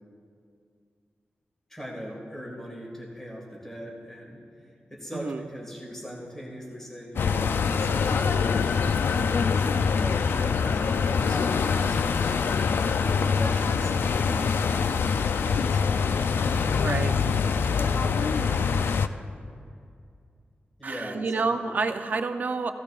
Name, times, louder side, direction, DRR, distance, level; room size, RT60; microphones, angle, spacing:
voice 1, 1.7-8.4 9.1-12.5 12.9-15.1 15.5-17.0 17.3-19.4 20.8-21.7, equal, 10° left, -3 dB, 1.9 m, -41 dB
voice 2, 5.1-5.4 16.8-17.2 20.8-22.7, right 4 dB, 50° right, 7 dB, 0.5 m, -28 dB
sound 1, 7.2-19.1, left 5 dB, 75° left, 0.3 m, -24 dB
sound 2, 7.6-15.5, right 2 dB, 50° left, 1.9 m, -48 dB
16.0 x 15.0 x 2.4 m, 2.3 s
wide cardioid pair, 170°, 4 cm